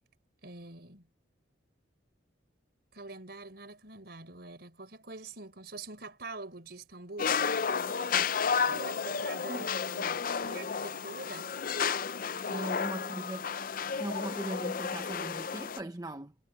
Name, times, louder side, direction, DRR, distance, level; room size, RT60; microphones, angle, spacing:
voice 1, 0.4-1.1 2.9-8.2 8.7-11.5 12.5-13.3, right 3 dB, 55° right, 4.9 m, -45 dB
sound 1, 7.2-15.8, left 6 dB, 45° left, 0.5 m, -32 dB
voice 2, 12.4-13.5 14.0-16.3, right 1 dB, 20° right, 0.8 m, -39 dB
head